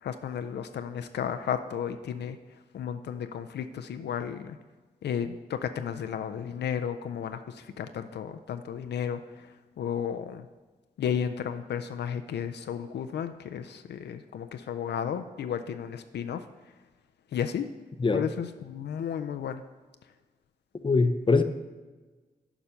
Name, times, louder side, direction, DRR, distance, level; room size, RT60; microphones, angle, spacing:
voice 1, 0.0-2.4 2.7-4.6 5.0-10.5 11.0-16.5 17.3-17.7 18.1-19.6, left 8 dB, 75° left, 8 dB, 0.4 m, -33 dB
voice 2, 20.8-21.4, left 3 dB, 30° left, 10 dB, 0.6 m, -22 dB
7.1 x 5.0 x 5.5 m, 1.3 s
cardioid pair, 50°, 18 cm